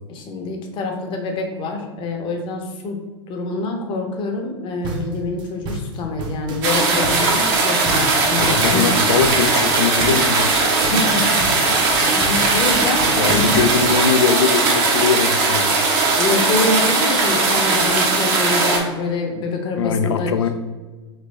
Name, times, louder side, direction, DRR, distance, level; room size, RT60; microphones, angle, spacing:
voice 1, 0.1-3.0 3.3-9.0 10.6-13.7 16.2-20.5, left 3 dB, 35° left, 3 dB, 0.9 m, -26 dB
sound 1, 4.8-14.3, right 1 dB, 30° right, 0.7 m, -31 dB
sound 2, 6.6-18.8, right 3 dB, 55° right, 1.0 m, -18 dB
voice 2, 8.4-10.5 13.2-15.8 19.7-20.5, left 6 dB, 75° left, 9 dB, 0.4 m, -21 dB
3.9 x 3.3 x 3.2 m, 1.3 s
figure-of-eight pair, 95°, 15 cm